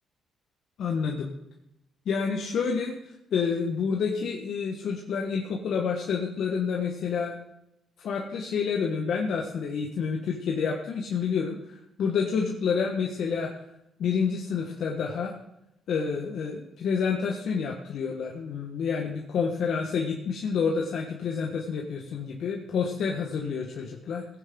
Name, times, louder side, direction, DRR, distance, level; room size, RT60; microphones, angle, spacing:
voice 1, 0.8-1.3 2.0-2.9 3.3-7.4 8.0-13.5 14.0-15.3 15.9-24.2, left 6 dB, 70° left, 0 dB, 1.4 m, -28 dB
17.5 x 9.7 x 3.8 m, 0.86 s
cardioid pair, 90°, 0 cm